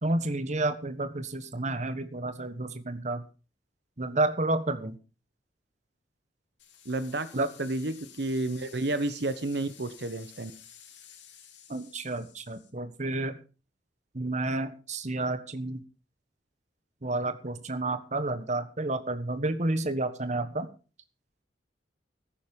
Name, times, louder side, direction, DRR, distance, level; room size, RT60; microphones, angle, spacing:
voice 1, 0.0-3.2 4.0-5.0 7.3-7.5 11.7-13.4 14.1-15.8 17.0-20.7, right 2 dB, 40° right, 11 dB, 1.3 m, -30 dB
sound 1, 6.6-12.7, left 9 dB, 90° left, 3.0 m, -53 dB
voice 2, 6.8-10.5, right 2 dB, 65° right, 12 dB, 1.1 m, -31 dB
14.0 x 10.5 x 5.3 m, 0.35 s
head